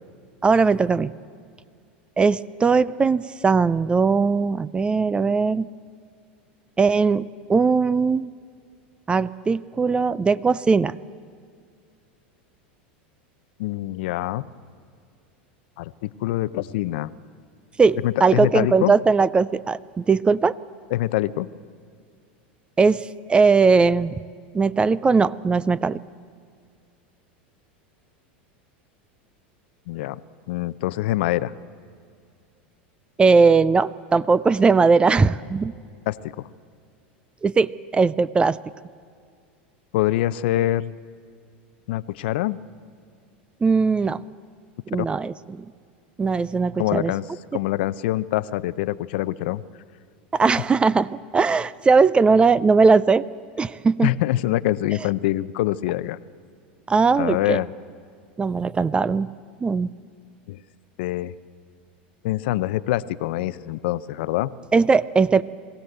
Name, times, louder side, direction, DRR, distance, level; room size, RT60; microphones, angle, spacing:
voice 1, 0.4-1.1 2.2-5.7 6.8-8.3 9.1-10.9 17.8-20.5 22.8-23.0 23.3-24.1 24.5-26.0 33.2-35.7 37.4-38.6 43.6-44.2 44.9-45.7 46.2-47.1 50.3-53.2 53.6-54.1 56.9-57.6 58.4-59.3 59.6-59.9 64.7-65.4, right 4 dB, 15° right, 20 dB, 0.4 m, -19 dB
voice 2, 13.6-14.5 15.8-17.1 18.0-18.9 20.9-21.5 29.9-30.2 30.5-31.5 36.1-36.5 39.9-40.9 41.9-42.6 45.0-45.1 46.8-47.3 47.5-49.6 54.0-56.2 57.2-57.7 60.5-60.6 61.0-61.3 62.2-64.5, left 15 dB, 70° left, 16 dB, 0.6 m, -25 dB
21.5 x 16.5 x 8.0 m, 2.2 s
hypercardioid pair, 105°, 6 cm